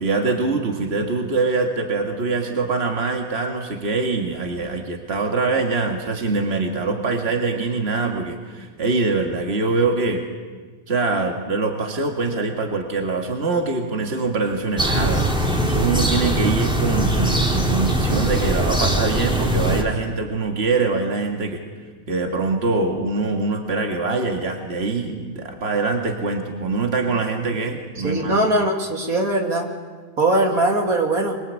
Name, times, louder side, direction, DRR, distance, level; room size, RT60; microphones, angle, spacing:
voice 1, 0.0-10.2 10.9-15.3 15.7-21.6 22.1-28.5, right 3 dB, 45° right, 3 dB, 2.4 m, -23 dB
sound 1, 14.8-19.8, right 1 dB, 5° right, 3.0 m, -21 dB
voice 2, 28.0-29.7 30.2-31.4, right 1 dB, 80° right, 2 dB, 3.5 m, -20 dB
25.5 x 24.0 x 8.5 m, 1.5 s
omnidirectional pair, 1.5 m